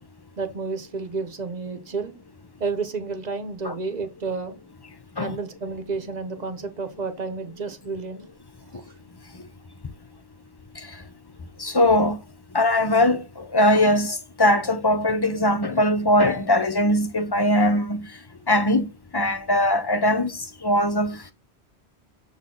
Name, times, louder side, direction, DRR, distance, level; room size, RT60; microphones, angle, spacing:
voice 1, 0.4-2.2 2.6-4.5 5.2-8.3 8.7-8.8, right 4 dB, 45° right, 1.0 m, -31 dB
voice 2, 11.6-12.2 12.5-18.0 18.5-18.9 19.1-20.3 20.6-21.2, left 1 dB, 30° left, 0.6 m, -20 dB
6.9 x 4.0 x 3.8 m
omnidirectional pair, 1.1 m